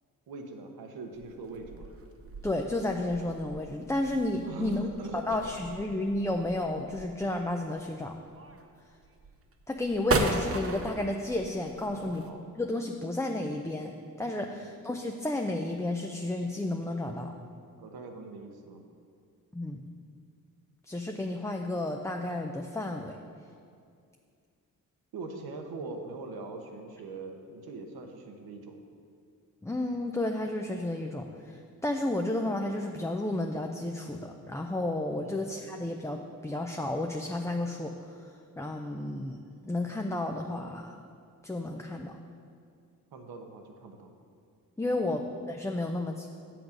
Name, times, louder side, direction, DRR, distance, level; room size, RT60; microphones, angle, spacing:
voice 1, 0.3-1.9 4.5-5.6 6.1-6.2 11.9-12.5 14.4-14.7 17.8-18.8 25.1-28.8 35.2-35.5 43.1-44.1 45.0-45.2, right 3 dB, 80° right, 4 dB, 1.0 m, -42 dB
sound 1, 1.1-12.3, right 3 dB, 40° right, 0.8 m, -37 dB
voice 2, 2.4-4.9 5.3-8.1 9.7-12.2 12.6-13.9 14.2-17.3 19.5-19.8 20.9-23.2 29.6-38.2 38.6-39.4 39.7-41.0 41.4-42.1 44.8-46.3, left 1 dB, 10° left, 3 dB, 0.5 m, -32 dB
7.9 x 6.0 x 5.1 m, 2.3 s
cardioid pair, 60°, 37 cm